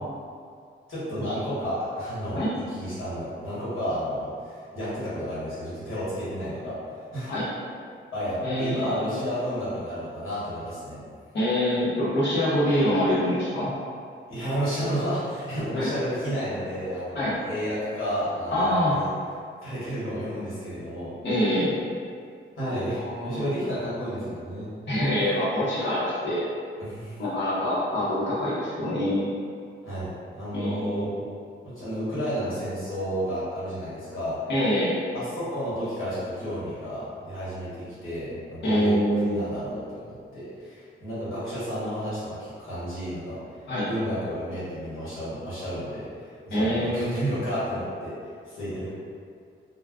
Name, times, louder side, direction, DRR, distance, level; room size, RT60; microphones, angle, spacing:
voice 1, 0.9-7.3 8.1-11.0 14.3-19.1 19.6-21.1 22.6-24.7 26.8-27.2 29.8-31.1 31.6-34.4 35.1-43.4 43.9-48.1 48.5-48.9, equal, 80° left, -11 dB, 1.2 m, -31 dB
voice 2, 8.4-9.1 11.3-13.7 15.8-15.9 17.2-17.3 18.5-18.9 21.2-21.7 22.9-23.4 24.9-26.5 27.2-29.3 30.5-31.2 34.5-34.9 38.6-39.5 43.7-43.9 46.5-47.1, equal, 60° left, -9 dB, 0.9 m, -25 dB
2.3 x 2.2 x 3.5 m, 2.2 s
wide cardioid pair, 170°, 21 cm